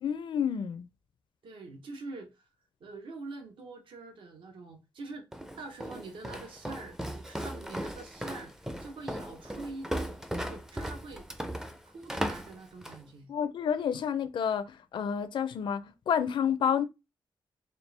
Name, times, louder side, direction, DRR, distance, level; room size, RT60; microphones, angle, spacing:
voice 1, 0.0-0.9 13.3-16.8, left 8 dB, 65° left, 0.4 m, -29 dB
voice 2, 1.4-2.4 2.8-5.3 5.6-11.3 11.8-13.3, right 3 dB, 70° right, 0.9 m, -45 dB
Walk footsteps, 5.3-13.1, equal, 5° right, 0.4 m, -37 dB
4.3 x 2.5 x 3.3 m
wide cardioid pair, 150°, 9 cm